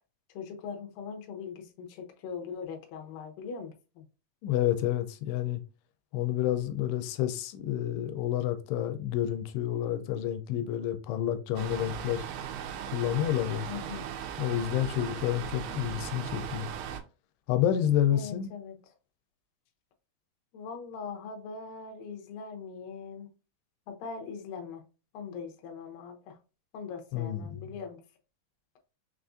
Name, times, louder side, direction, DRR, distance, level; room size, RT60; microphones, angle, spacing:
voice 1, 0.3-4.1 13.7-14.1 18.1-18.8 20.5-23.3 23.9-24.8 25.1-26.4 26.7-28.0, left 5 dB, 75° left, 2.3 m, -41 dB
voice 2, 4.4-5.6 6.1-12.2 12.9-13.7 14.4-16.7 17.5-18.5 27.1-27.6, left 11 dB, 90° left, 2.6 m, -29 dB
sound 1, 11.6-17.0, right 8 dB, 85° right, 2.7 m, -38 dB
6.0 x 2.4 x 2.5 m
omnidirectional pair, 4.6 m